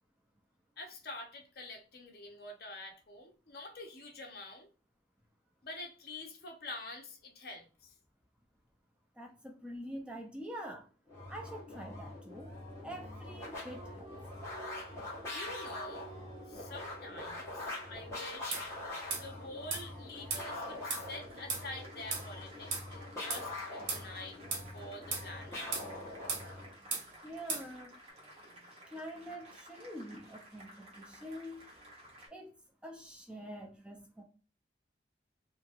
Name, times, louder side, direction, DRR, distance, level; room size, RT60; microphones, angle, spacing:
voice 1, 0.8-4.7 5.6-7.9 15.3-16.1 16.5-18.6 19.2-24.4 24.7-25.6, left 2 dB, 55° left, 0.8 m, -47 dB
voice 2, 9.2-10.9 11.3-14.1 27.2-28.0 28.9-31.7 32.3-32.5 32.8-34.2, equal, 5° right, 0.4 m, -46 dB
sound 1, 11.1-26.7, left 2 dB, 15° left, 1.2 m, -44 dB
Applause, 12.3-32.3, right 2 dB, 35° right, 1.0 m, -55 dB
sound 2, 18.5-18.7 19.1-19.3 19.7-19.8 20.3-20.5 20.9-21.1 21.5-21.6 22.1-22.3 22.7-22.9 23.3-23.4 23.9-24.0 24.5-24.7 25.1-25.3 25.7-25.9 26.3-26.5 26.9-27.1 27.5-27.7, right 4 dB, 80° right, 1.1 m, -36 dB
2.9 x 2.6 x 2.4 m
head